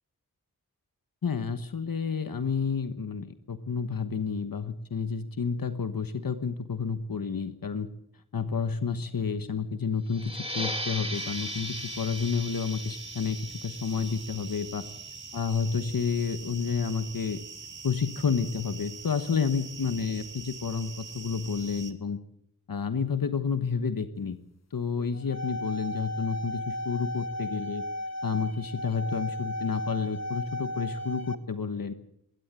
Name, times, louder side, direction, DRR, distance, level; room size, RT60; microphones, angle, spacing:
voice 1, 1.2-7.9 8.3-14.8 15.3-17.4 17.8-22.2 22.7-24.4 24.7-27.8 28.2-31.9, left 5 dB, 75° left, 10 dB, 1.3 m, -30 dB
sound 1, 10.1-15.3, equal, 15° right, 3.2 m, -38 dB
sound 2, 11.1-21.9, right 4 dB, 60° right, 2.1 m, -43 dB
sound 3, 25.1-31.4, left 1 dB, 45° left, 1.5 m, -35 dB
21.0 x 17.5 x 8.2 m, 0.75 s
wide cardioid pair, 65°, 35 cm